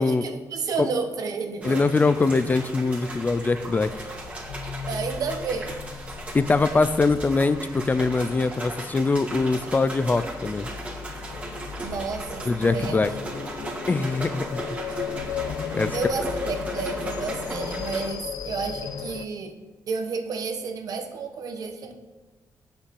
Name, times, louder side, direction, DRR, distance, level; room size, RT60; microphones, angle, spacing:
voice 1, 0.0-1.8 4.9-5.8 11.8-13.0 15.9-19.5 19.9-21.9, right 5 dB, 70° right, 6 dB, 1.2 m, -31 dB
voice 2, 1.6-3.9 6.3-10.7 12.5-13.1 13.9-14.6 15.7-16.0, left 3 dB, 25° left, 13 dB, 0.5 m, -23 dB
sound 1, 1.6-18.1, right 2 dB, 20° right, 2.2 m, -37 dB
sound 2, 2.6-19.2, left 7 dB, 90° left, 0.6 m, -36 dB
8.3 x 6.8 x 7.8 m, 1.3 s
cardioid pair, 120°, 6 cm